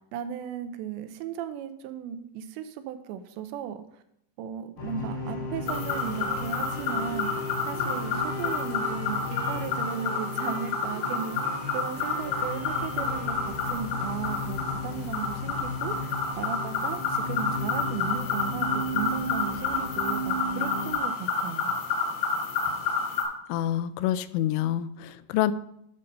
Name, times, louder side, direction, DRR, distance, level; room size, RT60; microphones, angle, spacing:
voice 1, 0.1-4.0 4.4-21.8, right 9 dB, 80° right, 9 dB, 2.8 m, -36 dB
sound 1, 4.8-20.9, left 2 dB, 25° left, 3.8 m, -35 dB
Wind instrument woodwind instrument, 5.6-14.1, right 5 dB, 60° right, 2.4 m, -44 dB
sound 2, 5.7-23.2, left 4 dB, 65° left, 3.7 m, -30 dB
voice 2, 23.5-25.5, left 12 dB, 90° left, 14 dB, 2.9 m, -27 dB
10.5 x 5.5 x 5.2 m, 0.75 s
omnidirectional pair, 5.2 m